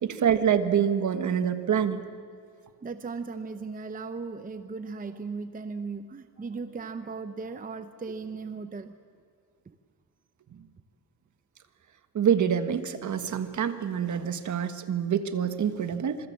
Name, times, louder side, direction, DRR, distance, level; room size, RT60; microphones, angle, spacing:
voice 1, 0.0-2.0 10.5-10.6 12.1-16.3, right 8 dB, 50° right, 9 dB, 1.5 m, -26 dB
voice 2, 2.8-9.0 9.7-9.8, right 4 dB, 20° right, 9 dB, 0.8 m, -37 dB
26.5 x 24.0 x 7.5 m, 2.2 s
cardioid pair, 135°, 39 cm